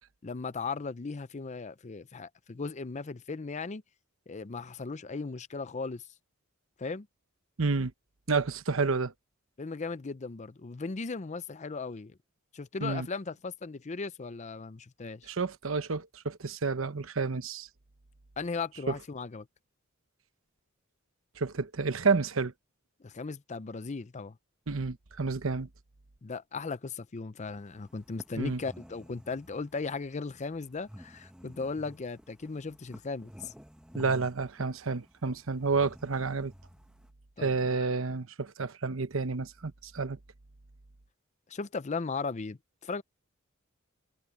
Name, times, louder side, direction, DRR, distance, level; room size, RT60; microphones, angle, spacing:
voice 1, 0.2-3.8 4.3-6.0 6.8-7.1 9.6-12.2 12.5-15.3 18.4-19.5 23.0-24.4 26.2-33.5 37.4-37.9 41.5-43.0, left 4 dB, 35° left, 0.5 m, -37 dB
voice 2, 7.6-7.9 8.3-9.1 12.8-13.1 15.3-17.7 18.9-19.0 21.4-22.5 24.7-25.7 28.4-28.6 33.9-36.5 37.4-40.2, right 4 dB, 70° right, 1.0 m, -30 dB
sound 1, 27.4-37.1, equal, 5° right, 1.1 m, -51 dB
head